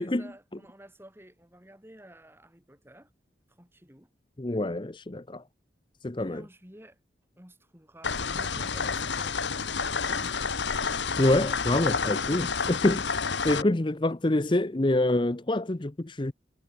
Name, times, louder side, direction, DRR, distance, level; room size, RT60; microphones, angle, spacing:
voice 1, 0.0-3.1 3.5-4.1 6.2-7.0 7.4-10.7 12.7-12.9, right 1 dB, 15° right, 5.3 m, -51 dB
voice 2, 4.4-5.4 6.0-6.4 11.2-13.0 13.4-16.3, left 1 dB, 25° left, 0.7 m, -26 dB
sound 1, 8.0-13.6, left 5 dB, 85° left, 1.6 m, -29 dB
head